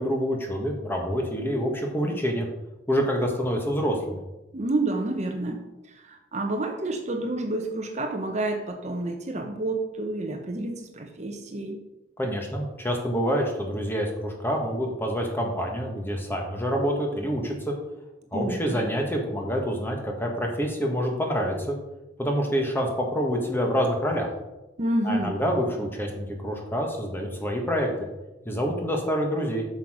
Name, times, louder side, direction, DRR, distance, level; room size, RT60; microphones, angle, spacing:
voice 1, 0.0-2.4 2.9-4.2 12.2-17.7 18.3-21.8 22.2-24.3 25.0-28.1 28.4-29.6, equal, 10° left, 1 dB, 1.5 m, -27 dB
voice 2, 4.5-11.8 18.3-18.8 24.8-25.4, right 2 dB, 40° right, 4 dB, 0.9 m, -29 dB
8.1 x 6.5 x 4.9 m, 1.0 s
head